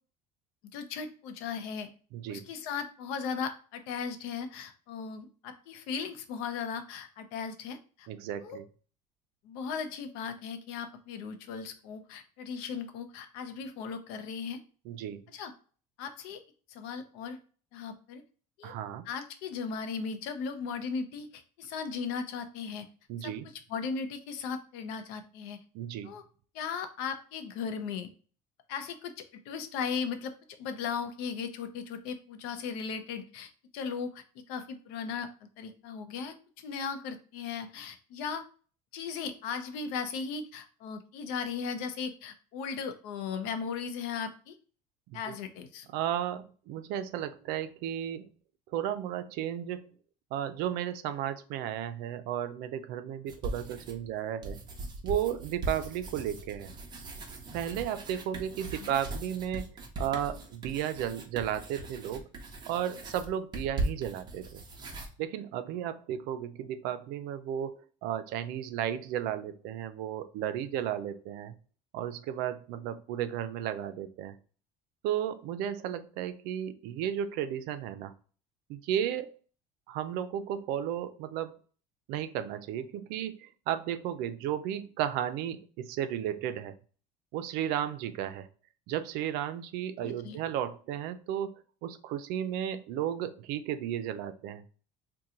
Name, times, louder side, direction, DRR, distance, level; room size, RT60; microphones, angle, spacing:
voice 1, 0.7-1.9 2.3-8.1 8.4-8.6 9.4-14.6 15.3-15.5 16.0-16.4 16.7-17.4 17.7-18.2 18.6-18.7 19.1-22.9 23.2-23.3 23.7-25.6 26.0-26.2 26.5-28.1 28.7-30.3 30.6-35.3 35.6-38.4 38.9-44.6 45.1-45.9 58.8-59.0 90.0-90.4, left 6 dB, 80° left, 8 dB, 0.6 m, -37 dB
voice 2, 2.1-2.4 8.1-8.6 14.9-15.2 18.6-19.1 23.1-23.5 25.7-26.1 45.1-45.3 45.9-48.3 48.7-49.9 50.3-54.6 55.0-56.7 57.5-62.3 62.7-64.6 65.2-71.5 71.9-74.4 75.0-78.1 78.7-79.4 79.9-81.6 82.1-86.7 87.3-88.5 88.9-91.5 91.8-94.6, right 10 dB, 70° right, 11 dB, 0.4 m, -34 dB
sound 1, 53.3-54.1 54.4-65.1, right 2 dB, 25° right, 0.7 m, -39 dB
2.8 x 2.2 x 3.7 m, 0.40 s
cardioid pair, 145°, 16 cm